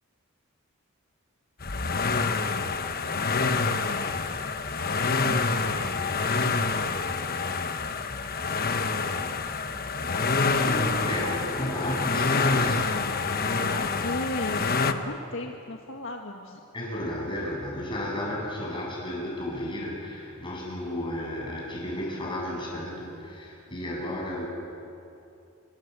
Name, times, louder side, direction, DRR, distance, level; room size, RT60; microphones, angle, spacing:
sound 1, 1.6-14.9, left 4 dB, 45° left, 1.2 m, -27 dB
voice 1, 10.6-13.0 16.7-24.5, left 1 dB, 20° left, -2 dB, 7.9 m, -33 dB
voice 2, 13.6-16.6, left 1 dB, 60° left, 1 dB, 1.8 m, -34 dB
27.5 x 25.0 x 8.4 m, 2.6 s
head